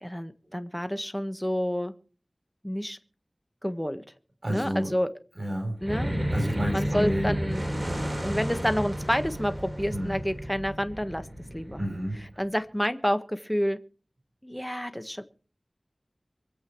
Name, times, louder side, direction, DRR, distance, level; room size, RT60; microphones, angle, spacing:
voice 1, 0.0-1.9 2.6-3.0 3.6-4.0 4.5-5.1 5.8-6.1 6.7-7.6 8.2-11.3 11.5-11.8 12.4-13.8 14.4-15.2, equal, 5° left, 9 dB, 1.5 m, -29 dB
voice 2, 4.4-4.9 5.4-5.8 6.3-7.4 9.9-10.2 11.8-12.2, equal, 55° right, 2 dB, 4.4 m, -30 dB
sound 1, 5.8-12.4, equal, 30° right, 3.6 m, -32 dB
24.5 x 8.2 x 4.7 m, 0.40 s
wide cardioid pair, 45°, 0 cm